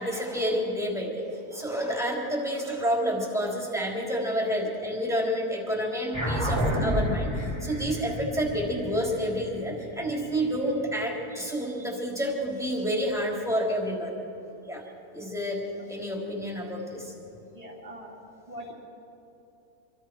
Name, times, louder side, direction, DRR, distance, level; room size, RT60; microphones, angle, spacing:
voice 1, 0.0-14.1 14.7-14.8 15.1-17.1, equal, ahead, -2 dB, 3.7 m, -29 dB
sound 1, 6.1-10.9, equal, 15° left, 3.9 m, -30 dB
voice 2, 17.5-18.1 18.5-18.7, equal, 20° right, -2 dB, 3.2 m, -42 dB
26.5 x 25.0 x 4.7 m, 2.9 s
omnidirectional pair, 1.7 m